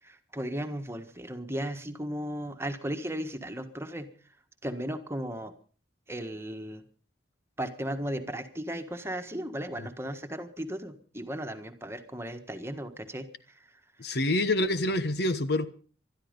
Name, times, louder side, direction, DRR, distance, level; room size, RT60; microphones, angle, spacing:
voice 1, 0.0-4.1 4.6-5.5 6.1-6.8 7.6-13.3, equal, 15° right, 7 dB, 1.5 m, -36 dB
voice 2, 14.0-15.7, left 1 dB, 60° left, 12 dB, 1.1 m, -26 dB
20.0 x 13.0 x 5.3 m, 0.42 s
head